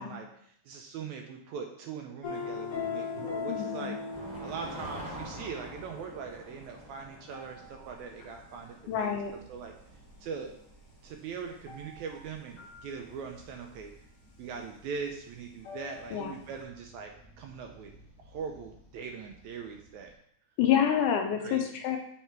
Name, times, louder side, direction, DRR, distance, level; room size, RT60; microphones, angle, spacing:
voice 1, 0.0-4.0 4.4-9.2 9.5-9.7 10.2-10.5 11.0-13.9 14.4-17.1 17.4-17.9 18.3-20.1 21.4-21.7, right 6 dB, 80° right, 3 dB, 1.8 m, -41 dB
sound 1, 2.2-8.5 11.7-12.2 12.6-12.8 15.6-16.3 16.6-16.7, left 5 dB, 50° left, 2.1 m, -40 dB
voice 2, 3.5-4.0 8.9-9.3 16.1-16.3 20.6-22.0, left 9 dB, 80° left, 4 dB, 2.1 m, -28 dB
sound 2, 4.1-20.1, right 1 dB, 5° left, 0.7 m, -50 dB
7.3 x 3.4 x 4.5 m, 0.69 s
omnidirectional pair, 3.7 m